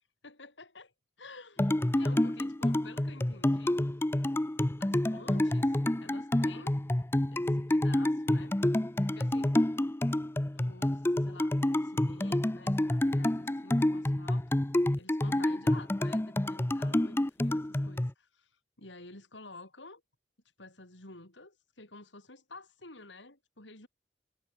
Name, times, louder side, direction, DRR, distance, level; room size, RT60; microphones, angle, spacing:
voice 1, 0.2-0.9 1.2-3.8 4.8-6.8 7.3-8.6 9.1-9.6 10.5-14.6 15.0-18.5 18.8-20.0 20.6-23.9, left 2 dB, 85° left, 6.6 m, -51 dB
sound 1, 1.6-18.1, left 1 dB, 15° left, 0.6 m, -28 dB
head